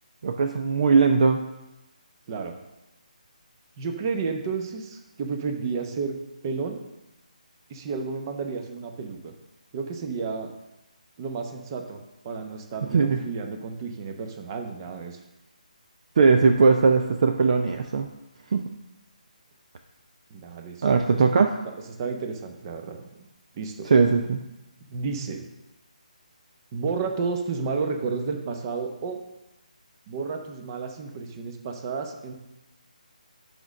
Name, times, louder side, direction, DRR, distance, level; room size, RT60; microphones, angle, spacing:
voice 1, 0.2-1.4 12.9-13.2 16.2-18.1 18.5-18.6 20.8-21.5 23.8-24.4, right 4 dB, 50° right, 5 dB, 0.5 m, -19 dB
voice 2, 2.3-2.6 3.8-6.1 6.4-6.8 7.7-9.3 9.7-10.5 11.2-12.0 12.2-15.2 20.3-21.2 22.0-23.2 23.5-23.9 24.9-25.5 26.7-29.2 30.1-32.3, right 5 dB, 30° right, 4 dB, 0.9 m, -31 dB
6.1 x 5.3 x 6.0 m, 0.97 s
figure-of-eight pair, 155°, 4 cm